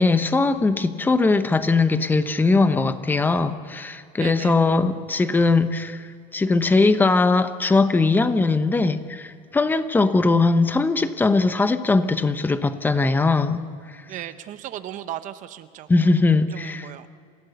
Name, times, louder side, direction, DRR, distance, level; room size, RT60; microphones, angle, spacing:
voice 1, 0.0-13.7 15.9-16.9, left 3 dB, 10° left, 11 dB, 0.8 m, -20 dB
voice 2, 4.2-4.6 14.1-16.1 16.5-17.1, right 12 dB, 40° right, 12 dB, 0.7 m, -36 dB
28.0 x 16.0 x 6.9 m, 2.3 s
cardioid pair, 150°, 19 cm